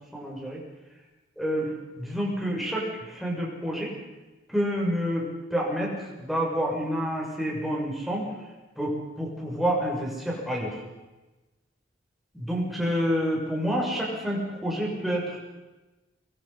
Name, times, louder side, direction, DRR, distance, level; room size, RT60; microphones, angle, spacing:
voice 1, 0.1-0.6 1.4-1.7 2.0-3.9 4.5-5.9 6.2-8.3 8.8-10.8 12.3-15.4, equal, ahead, -3 dB, 6.9 m, -28 dB
26.5 x 22.5 x 6.0 m, 1.1 s
head